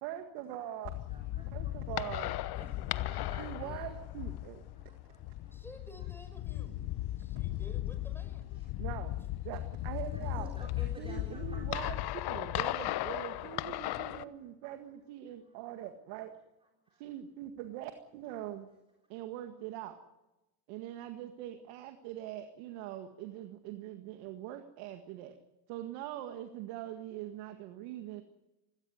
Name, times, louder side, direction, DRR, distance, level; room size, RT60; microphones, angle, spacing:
voice 1, 0.0-0.9 1.5-2.4 3.4-4.7 8.8-9.1 9.4-10.5 11.0-12.0 12.3-16.3 17.0-18.7 19.1-20.0 20.7-25.4 25.7-28.2, right 12 dB, 75° right, 7 dB, 2.0 m, -42 dB
sound 1, 0.8-14.2, left 15 dB, 50° left, 1.0 m, -37 dB
voice 2, 1.1-1.9 2.5-3.9 4.7-5.6 6.0-6.1 7.1-7.4 8.5-8.8 10.1-12.0 12.8-13.5 16.9-17.0, right 1 dB, 10° right, 1 dB, 4.2 m, -53 dB
voice 3, 5.5-6.8 7.2-8.5, equal, 5° left, 8 dB, 5.6 m, -53 dB
18.5 x 18.0 x 9.8 m, 0.99 s
supercardioid pair, 100°, 48 cm